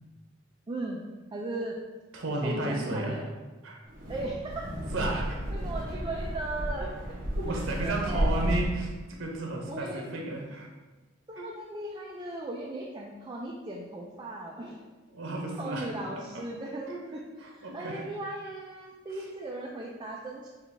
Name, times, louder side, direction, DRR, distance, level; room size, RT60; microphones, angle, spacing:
voice 1, 0.7-1.8 2.4-3.2 4.1-4.7 5.5-6.9 7.8-8.6 9.7-10.1 11.3-14.8 15.6-17.2 17.5-20.5, right 2 dB, 25° right, -2 dB, 0.4 m, -37 dB
voice 2, 2.1-3.3 3.6-3.8 4.9-5.4 7.4-10.7 11.4-11.5 15.1-15.9 16.2-16.5 16.9-17.0 17.4-18.0 19.1-19.3, right 2 dB, 85° right, 0 dB, 0.8 m, -33 dB
Wind, 3.8-8.9, equal, 45° right, 0.9 m, -32 dB
5.6 x 2.4 x 3.4 m, 1.2 s
head